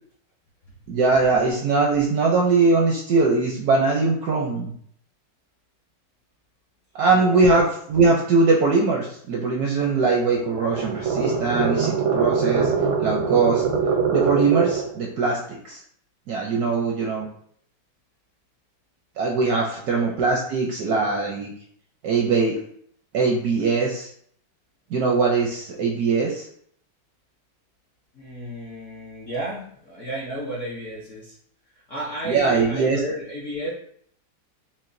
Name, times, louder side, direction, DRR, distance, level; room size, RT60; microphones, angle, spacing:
voice 1, 0.9-4.7 7.0-12.7 13.0-13.6 14.1-15.8 16.3-17.3 19.2-21.5 22.0-22.6 23.1-24.1 24.9-26.5 32.3-33.0, right 4 dB, 75° right, -1 dB, 0.9 m, -21 dB
voice 2, 7.1-7.6 19.8-20.2 28.1-31.4 31.7-33.7, equal, 65° left, -5 dB, 0.7 m, -33 dB
sound 1, 10.1-15.0, right 5 dB, 90° right, 1.6 m, -23 dB
5.8 x 2.1 x 2.5 m, 0.64 s
omnidirectional pair, 2.1 m